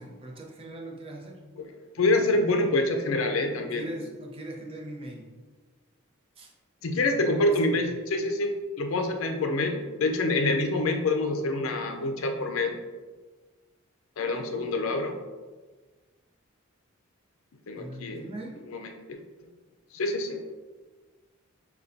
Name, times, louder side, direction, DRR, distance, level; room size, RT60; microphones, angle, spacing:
voice 1, 0.0-1.4 3.6-5.3 6.4-6.5 6.9-7.9 17.8-18.6, right 1 dB, 25° right, -1 dB, 0.6 m, -40 dB
voice 2, 1.9-3.9 6.8-12.7 14.2-15.2 17.7-18.2 18.7-19.2 19.9-20.4, left 2 dB, 75° left, 5 dB, 0.5 m, -26 dB
6.7 x 2.2 x 2.6 m, 1.3 s
head